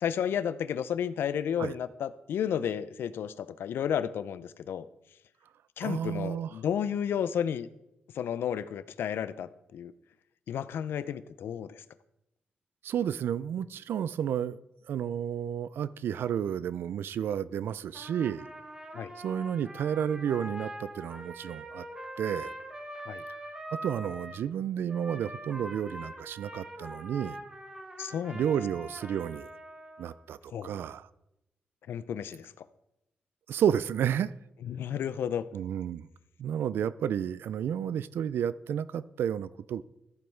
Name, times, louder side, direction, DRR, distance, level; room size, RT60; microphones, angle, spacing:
voice 1, 0.0-4.8 5.8-7.7 8.1-9.9 10.5-11.8 18.9-19.1 23.1-23.2 28.0-28.4 30.5-30.7 31.9-32.5 34.7-35.5, left 8 dB, 85° left, 0.4 m, -32 dB
voice 2, 5.8-6.6 12.8-14.6 14.9-18.5 19.2-21.9 22.2-22.5 23.7-27.4 28.3-29.5 30.0-31.1 33.5-34.3 35.5-36.1 36.4-39.8, right 9 dB, 80° right, 0.3 m, -31 dB
Trumpet, 17.9-24.4 24.9-30.2, right 1 dB, 20° right, 1.2 m, -43 dB
14.0 x 5.3 x 4.5 m
wide cardioid pair, 130°, 4 cm